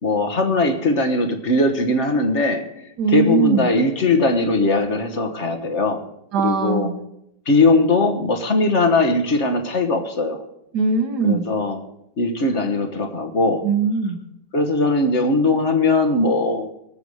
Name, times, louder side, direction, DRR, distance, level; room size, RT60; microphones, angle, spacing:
voice 1, 0.0-2.6 3.1-6.0 6.4-6.9 7.5-10.4 11.2-11.8 12.2-13.6 14.5-16.7, left 2 dB, 45° left, 5 dB, 1.5 m, -19 dB
voice 2, 3.0-3.7 6.3-7.0 10.7-11.5 13.6-14.2, right 5 dB, 70° right, 4 dB, 2.1 m, -20 dB
19.0 x 6.9 x 6.5 m, 0.79 s
omnidirectional pair, 1.8 m